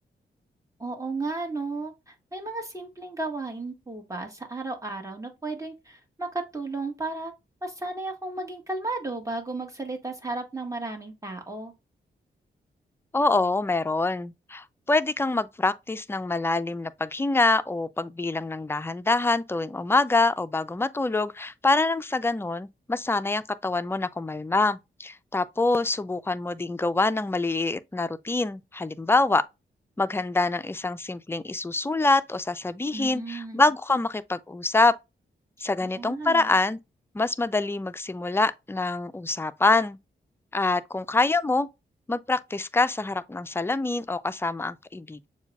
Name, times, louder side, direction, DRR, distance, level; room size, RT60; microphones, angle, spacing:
voice 1, 0.8-7.3 7.6-11.7 32.9-33.6 35.8-36.6, right 3 dB, 15° right, 1.5 m, -34 dB
voice 2, 13.1-29.4 30.0-34.9 35.6-36.8 37.1-40.0 40.5-41.7 42.1-45.3, left 3 dB, 10° left, 0.4 m, -25 dB
7.0 x 2.3 x 2.3 m
supercardioid pair, 45°, 20 cm